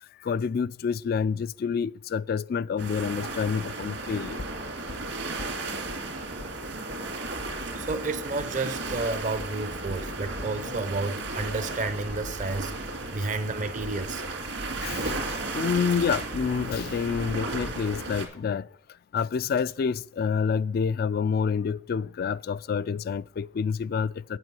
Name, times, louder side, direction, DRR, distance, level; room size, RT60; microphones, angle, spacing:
voice 1, 0.2-4.4 14.8-15.2 15.5-18.7 19.1-24.4, left 6 dB, 55° left, 0.3 m, -28 dB
sound 1, 2.8-18.3, right 2 dB, 75° right, 2.3 m, -34 dB
sound 2, 4.4-6.0 6.4-6.6 6.9-7.0 7.4-7.5 7.9-8.0 8.4-8.6 8.9-9.0 9.4-15.4 15.7-15.8, left 1 dB, 85° left, 1.2 m, -46 dB
voice 2, 7.8-12.7 13.1-14.2, right 3 dB, 45° right, 0.6 m, -31 dB
8.1 x 7.9 x 5.4 m
head